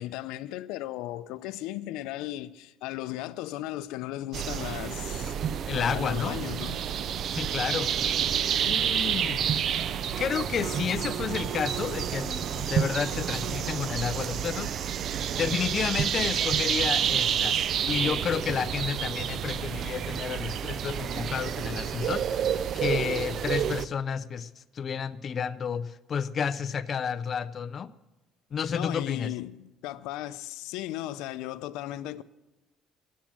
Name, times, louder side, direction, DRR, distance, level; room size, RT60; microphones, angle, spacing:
voice 1, 0.0-5.4 5.7-6.9 7.5-7.8 28.7-32.2, left 15 dB, 90° left, 0.5 m, -36 dB
sound 1, 4.3-23.9, right 9 dB, 45° right, 0.4 m, -29 dB
voice 2, 5.7-6.4 7.3-8.2 8.6-9.4 10.2-14.7 15.3-17.6 17.8-22.5 22.7-24.5 24.7-27.9 28.5-29.3, left 7 dB, 30° left, 0.4 m, -31 dB
17.5 x 7.4 x 7.4 m
cardioid pair, 160°, 0 cm